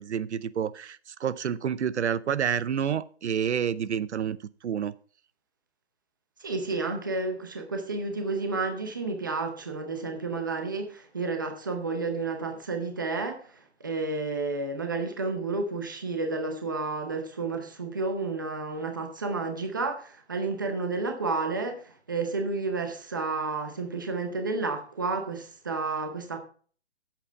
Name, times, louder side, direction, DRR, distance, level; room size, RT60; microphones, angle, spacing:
voice 1, 0.0-4.4 4.6-4.9, right 8 dB, 80° right, 0.7 m, -29 dB
voice 2, 6.4-26.4, right 3 dB, 20° right, 0.7 m, -31 dB
8.8 x 7.6 x 4.5 m
hypercardioid pair, 180°, 34 cm